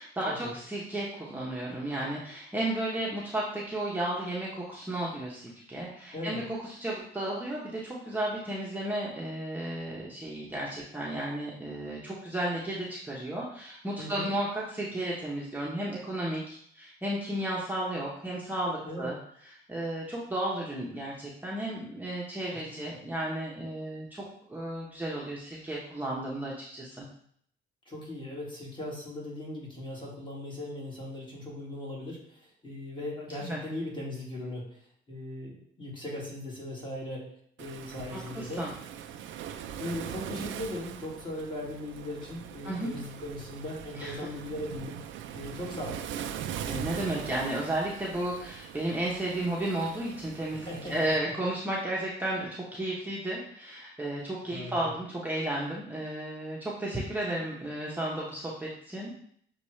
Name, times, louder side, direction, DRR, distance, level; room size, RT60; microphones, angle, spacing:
voice 1, 0.0-19.2 19.4-24.2 24.5-27.0 33.4-33.6 38.1-38.7 42.6-42.9 43.9-44.3 46.6-59.1, right 1 dB, 10° right, -6 dB, 0.9 m, -33 dB
voice 2, 6.1-6.4 14.0-14.3 18.8-19.1 22.5-22.8 27.9-37.3 37.6-38.7 39.8-45.0 45.3-46.0 50.5-51.3 54.5-54.8, left 1 dB, 25° left, -4 dB, 1.8 m, -39 dB
Waves surf, 37.6-51.2, right 9 dB, 75° right, 0.4 m, -41 dB
6.7 x 2.3 x 3.1 m, 0.65 s
cardioid pair, 90°, 20 cm